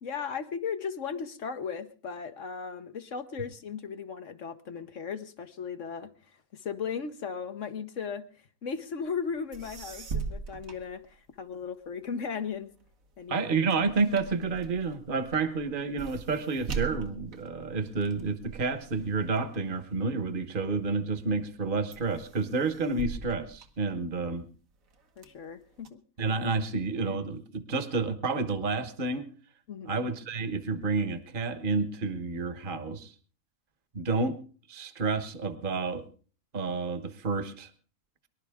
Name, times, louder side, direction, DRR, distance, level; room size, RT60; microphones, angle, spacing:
voice 1, 0.0-6.1 6.5-8.3 8.6-12.7 13.2-13.5 25.2-26.0 29.7-30.0, left 6 dB, 65° left, 8 dB, 1.5 m, -36 dB
sound 1, 9.2-9.3 9.5-11.6 12.1-20.7 21.2-21.6 21.9-24.4 24.9-25.9, right 6 dB, 80° right, 1.7 m, -41 dB
voice 2, 13.3-24.5 26.2-29.2 29.8-33.1 33.9-34.4 34.7-36.0 36.5-37.7, right 4 dB, 40° right, 10 dB, 1.3 m, -30 dB
24.0 x 11.5 x 3.6 m, 0.40 s
omnidirectional pair, 1.4 m